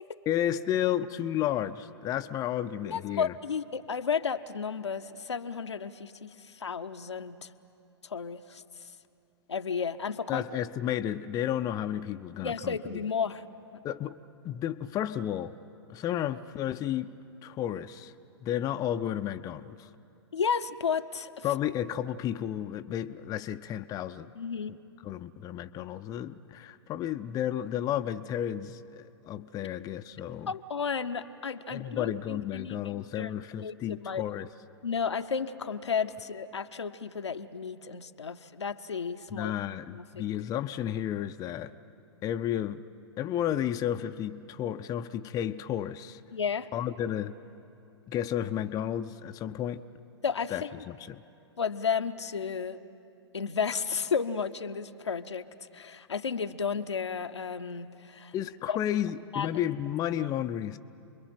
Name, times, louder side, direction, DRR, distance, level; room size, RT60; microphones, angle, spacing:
voice 1, 0.3-3.3 10.3-13.0 13.8-14.2 14.4-15.6 15.9-17.1 17.4-18.1 18.4-19.9 21.4-24.3 24.7-24.8 25.0-30.5 31.7-34.5 39.3-41.7 42.2-42.8 43.2-46.2 46.7-47.3 48.1-49.8 50.5-51.2 58.3-60.8, left 11 dB, 25° left, 9 dB, 0.5 m, -32 dB
voice 2, 2.8-7.5 8.0-8.6 9.5-10.4 12.4-13.4 20.3-21.4 24.3-24.8 30.5-33.3 33.6-34.2 34.8-39.5 39.9-40.2 46.3-46.7 50.2-50.7 51.6-52.8 53.3-55.5 55.7-58.3 58.7-58.8 59.3-59.6, left 6 dB, 85° left, 8 dB, 0.8 m, -33 dB
29.0 x 22.0 x 6.0 m, 2.7 s
hypercardioid pair, 110°, 14 cm